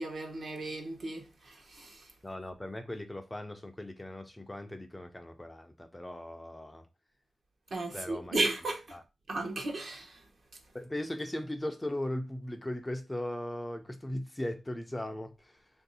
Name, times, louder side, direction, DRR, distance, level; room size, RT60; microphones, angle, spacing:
voice 1, 0.0-2.1 7.7-9.0 9.3-10.2, right 2 dB, 55° right, 1.0 m, -35 dB
voice 2, 2.2-6.8 7.9-8.4 8.9-9.0 10.7-15.5, left 1 dB, 15° left, 0.5 m, -38 dB
3.1 x 2.6 x 4.0 m
wide cardioid pair, 95°, 0 cm